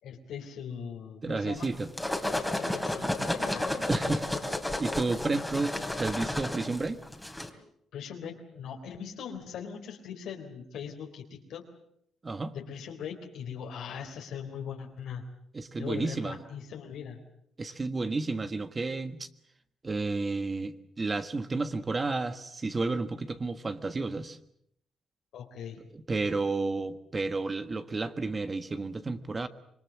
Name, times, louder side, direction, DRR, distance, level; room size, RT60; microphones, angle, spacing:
voice 1, 0.0-1.7 2.3-3.9 7.9-11.6 12.5-15.2 15.8-17.2 25.3-25.8, left 7 dB, 80° left, 2 dB, 3.5 m, -40 dB
voice 2, 1.2-1.9 3.9-7.0 12.2-12.5 15.5-16.4 17.6-19.3 19.8-24.4 25.9-29.5, right 3 dB, 30° right, 10 dB, 1.4 m, -31 dB
sound 1, 1.6-7.5, left 1 dB, 5° left, 3.1 m, -32 dB
26.0 x 21.5 x 7.4 m, 0.72 s
cardioid pair, 90°, 0 cm